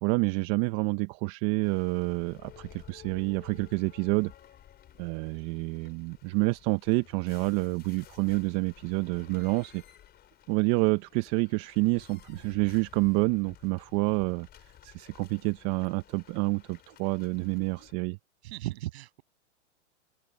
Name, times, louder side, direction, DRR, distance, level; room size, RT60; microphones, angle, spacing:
voice 1, 0.0-4.3 5.0-9.8 10.5-14.5 14.8-18.2, right 26 dB, 40° right, 1.1 m, -28 dB
sound 1, 1.6-17.9, left 11 dB, 25° left, 4.4 m, -54 dB
voice 2, 18.4-19.2, right 16 dB, 60° right, 7.8 m, -36 dB
open air
hypercardioid pair, 120°, 36 cm